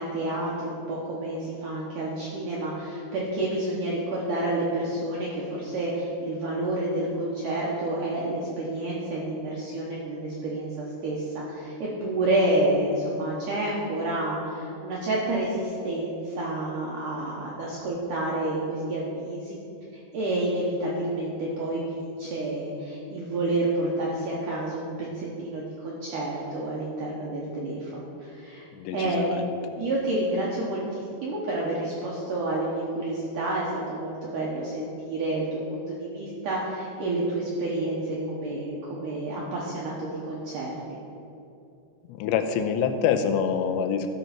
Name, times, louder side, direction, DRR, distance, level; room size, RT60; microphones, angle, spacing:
voice 1, 0.0-19.5 20.1-28.7 28.9-29.3 29.8-40.8, right 1 dB, 70° right, -5 dB, 2.0 m, -29 dB
voice 2, 28.8-29.5 42.1-44.1, left 7 dB, 85° left, 8 dB, 2.9 m, -26 dB
13.0 x 5.3 x 5.8 m, 2.8 s
omnidirectional pair, 5.1 m